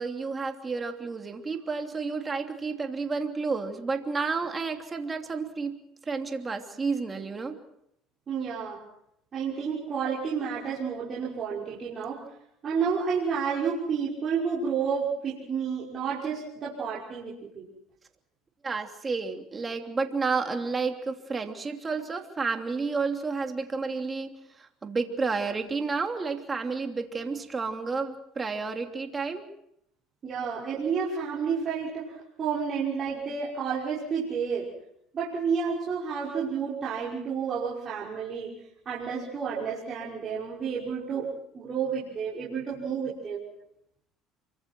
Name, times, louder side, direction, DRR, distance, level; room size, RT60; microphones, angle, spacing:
voice 1, 0.0-5.8 6.1-7.6 18.6-29.5, right 4 dB, 25° right, 4 dB, 3.1 m, -31 dB
voice 2, 8.3-8.8 9.3-12.2 12.6-17.7 30.2-34.7 35.1-38.5 38.9-41.3 41.5-43.4, right 6 dB, 40° right, -6 dB, 6.0 m, -30 dB
28.5 x 24.5 x 4.6 m, 0.75 s
supercardioid pair, 95°, 0 cm